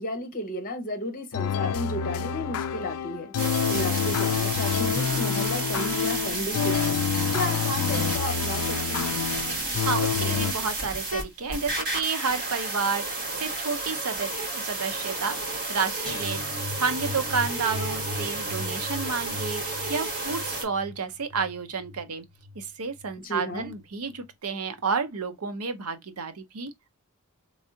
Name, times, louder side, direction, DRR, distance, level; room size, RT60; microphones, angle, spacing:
voice 1, 0.0-3.3 3.7-7.0 7.3-9.3 23.2-23.7, left 1 dB, 40° left, 1.0 m, -33 dB
sound 1, 1.3-10.5, left 8 dB, 75° left, 0.4 m, -28 dB
sound 2, 3.4-20.6, right 2 dB, 40° right, 2.1 m, -31 dB
voice 2, 9.8-16.4 16.8-22.2 22.6-26.7, right 5 dB, 75° right, 0.7 m, -31 dB
sound 3, 16.1-23.1 23.5-23.8 24.1-24.2, left 2 dB, 20° right, 1.4 m, -39 dB
3.5 x 3.1 x 2.7 m
head